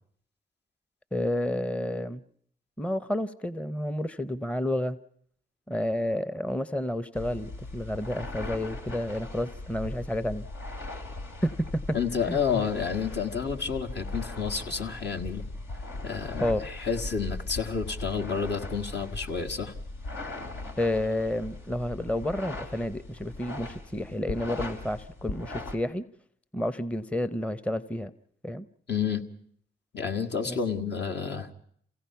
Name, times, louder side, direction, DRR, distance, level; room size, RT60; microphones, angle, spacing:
voice 1, 1.1-2.2 2.8-5.0 5.7-10.5 11.4-11.8 12.3-12.7 16.4-16.6 20.8-26.0 26.5-28.1 28.4-28.7 30.4-30.6, left 1 dB, 5° left, 15 dB, 0.8 m, -30 dB
sound 1, 7.1-25.7, left 2 dB, 75° left, 2.8 m, -39 dB
voice 2, 11.9-15.5 16.0-19.7 28.9-29.2 29.9-31.5, left 6 dB, 60° left, 4 dB, 1.7 m, -30 dB
28.0 x 16.5 x 5.7 m, 0.63 s
supercardioid pair, 55°, 20 cm